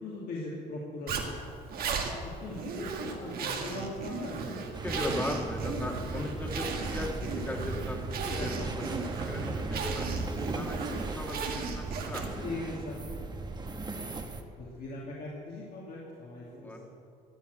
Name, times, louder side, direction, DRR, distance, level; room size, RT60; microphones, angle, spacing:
voice 1, 0.0-1.5 2.4-4.5 6.1-6.2 8.3-8.7 12.4-13.8 14.1-14.2 14.6-16.9, left 2 dB, 60° left, -5 dB, 2.7 m, -40 dB
Zipper (clothing), 1.1-12.5, right 5 dB, 60° right, 2.0 m, -36 dB
sound 1, 4.7-14.4, right 3 dB, 25° right, 1.2 m, -37 dB
voice 2, 4.8-6.7 6.9-12.5 16.6-16.8, left 1 dB, 10° left, 2 dB, 1.9 m, -38 dB
15.5 x 8.9 x 7.9 m, 2.5 s
cardioid pair, 110°, 17 cm